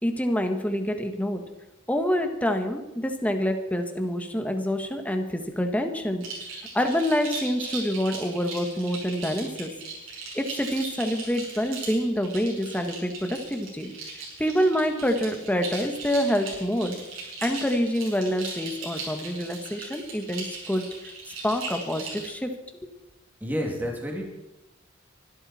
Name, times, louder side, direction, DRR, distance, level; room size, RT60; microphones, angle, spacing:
voice 1, 0.0-1.4 1.9-6.2 6.7-9.7 10.3-13.9 14.4-17.0 17.4-20.9 21.4-22.5 22.8-22.9, equal, 5° left, 5 dB, 1.5 m, -26 dB
sound 1, 6.2-22.3, right 3 dB, 80° right, 7.9 m, -38 dB
voice 2, 23.4-24.3, equal, 10° right, 0 dB, 2.5 m, -29 dB
24.0 x 13.0 x 4.4 m, 0.99 s
head